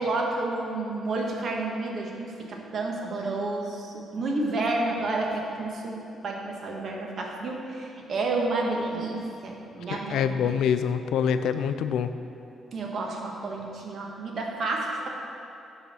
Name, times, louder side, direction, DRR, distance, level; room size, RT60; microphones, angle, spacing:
voice 1, 0.0-10.5 12.7-15.1, right 2 dB, 55° right, 0 dB, 1.2 m, -30 dB
voice 2, 9.9-12.1, left 7 dB, 80° left, 10 dB, 0.3 m, -25 dB
11.5 x 4.0 x 4.2 m, 2.8 s
cardioid pair, 90°, 0 cm